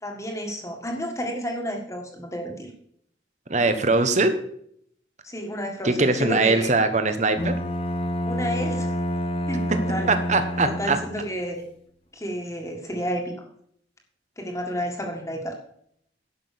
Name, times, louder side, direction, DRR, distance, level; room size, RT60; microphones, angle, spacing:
voice 1, 0.0-2.7 5.2-6.7 8.2-8.9 9.5-10.1 10.6-11.6 12.1-13.4 14.4-15.5, equal, 15° left, 1 dB, 1.8 m, -31 dB
voice 2, 3.5-4.4 5.8-7.5 10.1-11.0, right 3 dB, 40° right, 9 dB, 1.2 m, -21 dB
Bowed string instrument, 7.4-11.3, equal, 30° left, 1.0 m, -28 dB
11.5 x 6.1 x 6.8 m, 0.67 s
head